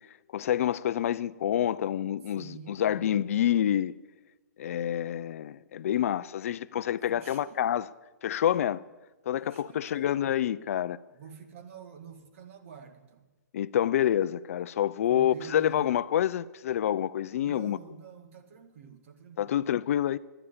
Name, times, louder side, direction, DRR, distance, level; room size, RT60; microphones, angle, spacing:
voice 1, 0.3-3.9 4.6-7.9 8.2-8.8 9.3-11.0 13.5-17.8 19.4-20.2, left 11 dB, 50° left, 0.5 m, -27 dB
voice 2, 2.3-3.0 7.1-7.6 9.4-10.1 11.1-13.3 15.0-15.9 17.4-19.7, right 7 dB, 45° right, 2.0 m, -48 dB
13.0 x 9.9 x 9.6 m
hypercardioid pair, 160°, 10 cm